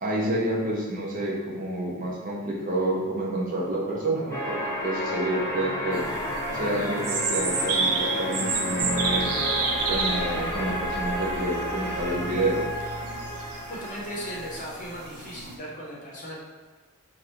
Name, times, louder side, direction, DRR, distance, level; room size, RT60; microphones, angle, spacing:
voice 1, 0.0-6.1 6.5-9.3 9.9-12.7, right 1 dB, 35° right, -4 dB, 0.6 m, -28 dB
sound 1, 4.3-14.6, equal, 15° left, 0.5 m, -32 dB
sound 2, 5.9-15.6, right 4 dB, 85° right, 0.5 m, -31 dB
sound 3, 8.8-13.6, left 1 dB, 60° right, 1.0 m, -42 dB
voice 2, 13.7-16.4, equal, 35° left, -5 dB, 0.8 m, -37 dB
3.1 x 2.5 x 4.3 m, 1.4 s
head